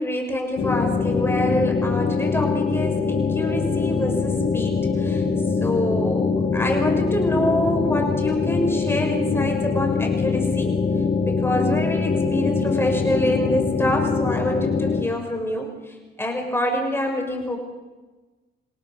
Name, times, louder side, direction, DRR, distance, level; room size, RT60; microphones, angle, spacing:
voice 1, 0.0-5.2 5.6-10.7 11.3-17.6, left 1 dB, 10° left, 2 dB, 5.7 m, -26 dB
sound 1, 0.6-15.0, left 5 dB, 45° left, 2.0 m, -23 dB
28.0 x 17.5 x 6.4 m, 1.2 s
cardioid pair, 90°, 20 cm